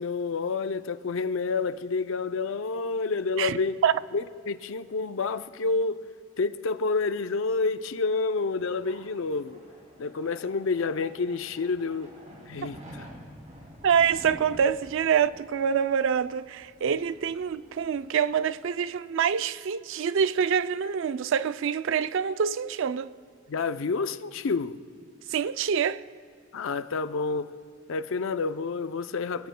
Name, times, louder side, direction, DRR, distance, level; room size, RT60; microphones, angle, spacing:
voice 1, 0.0-3.8 4.1-6.0 6.4-9.6 10.0-12.1 12.5-13.1 23.5-24.8 26.5-27.5 27.9-29.5, left 4 dB, 70° left, 0.5 m, -29 dB
voice 2, 3.4-3.9 13.8-23.1 25.3-26.0, right 7 dB, 70° right, 0.4 m, -26 dB
sound 1, 7.7-18.9, right 1 dB, 35° right, 2.6 m, -50 dB
25.5 x 16.0 x 2.2 m
head